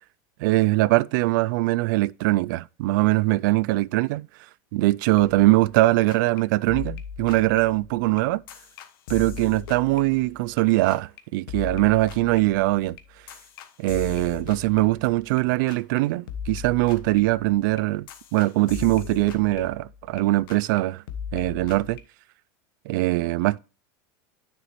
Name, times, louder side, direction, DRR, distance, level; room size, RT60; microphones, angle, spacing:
voice 1, 0.4-4.3 4.7-8.4 9.1-13.0 13.8-21.0 21.3-22.0 22.9-23.6, right 19 dB, 65° right, 0.4 m, -22 dB
sound 1, 5.2-5.8 6.1-6.4 6.7-10.6 10.9-11.2 11.5-15.4 15.7-16.0 16.3-20.2 20.5-20.8 21.1-22.0, left 7 dB, 80° left, 1.2 m, -38 dB
9.5 x 6.7 x 3.1 m
supercardioid pair, 150°, 11 cm